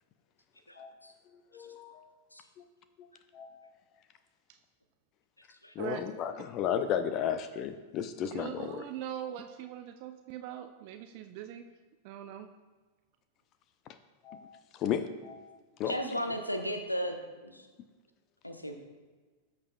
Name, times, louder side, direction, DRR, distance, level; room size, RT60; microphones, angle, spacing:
voice 1, 0.7-1.1 2.3-2.4 5.6-5.7 15.9-17.2 17.4-17.7 18.4-18.7, equal, 90° left, 5 dB, 0.9 m, -35 dB
voice 2, 1.5-2.1 2.6-2.7 3.0-3.1 3.3-3.6 5.8-8.8 14.2-15.5 15.8-15.9, left 9 dB, 35° left, 10 dB, 0.5 m, -34 dB
voice 3, 5.8-6.1 8.3-11.6 12.0-12.5 16.0-16.4, right 11 dB, 45° right, 7 dB, 0.4 m, -41 dB
13.5 x 6.7 x 2.3 m, 1.3 s
figure-of-eight pair, 90°, 0 cm